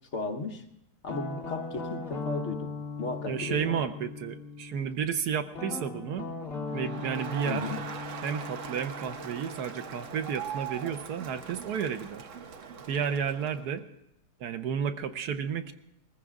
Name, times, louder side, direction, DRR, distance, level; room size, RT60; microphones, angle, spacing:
voice 1, 0.1-0.6 1.0-3.9 7.5-7.8, left 3 dB, 50° left, 4 dB, 1.2 m, -35 dB
Guitar, 1.1-4.9 5.5-10.3, left 4 dB, 35° left, 2.3 m, -39 dB
voice 2, 3.3-6.3 6.7-7.7 8.2-12.3 12.9-13.8 14.4-15.7, right 7 dB, 75° right, 9 dB, 1.3 m, -32 dB
Crowd, 6.7-13.7, right 7 dB, 55° right, 1.1 m, -41 dB
20.5 x 15.0 x 3.6 m, 0.77 s
omnidirectional pair, 1.8 m